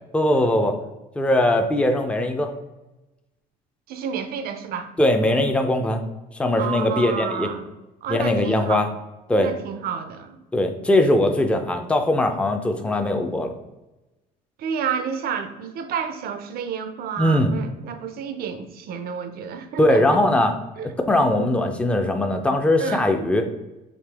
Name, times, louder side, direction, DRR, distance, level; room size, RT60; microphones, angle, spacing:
voice 1, 0.1-0.8 1.2-2.5 5.0-6.0 6.4-7.5 8.1-8.9 9.3-9.5 10.5-13.5 17.2-17.5 19.8-20.5 20.8-23.4, left 1 dB, 5° left, 5 dB, 0.4 m, -20 dB
voice 2, 3.9-4.9 6.6-7.7 8.0-8.9 9.4-10.4 14.6-20.2 20.8-20.9 22.8-23.1, right 6 dB, 65° right, 8 dB, 0.5 m, -30 dB
5.1 x 2.8 x 3.3 m, 1.0 s
cardioid pair, 110°, 17 cm